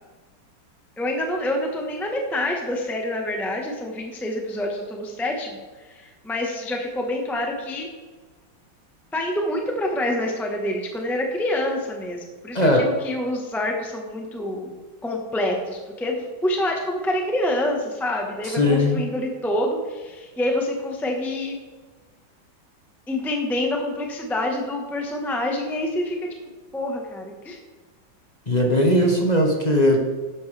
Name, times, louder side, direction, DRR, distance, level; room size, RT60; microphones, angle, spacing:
voice 1, 1.0-7.9 9.1-14.7 15.0-21.6 23.1-26.2 26.7-27.6, left 1 dB, ahead, 1 dB, 0.9 m, -27 dB
voice 2, 18.4-19.0 28.5-30.0, left 1 dB, 25° left, 0 dB, 1.2 m, -19 dB
11.5 x 9.2 x 3.4 m, 1.3 s
omnidirectional pair, 2.0 m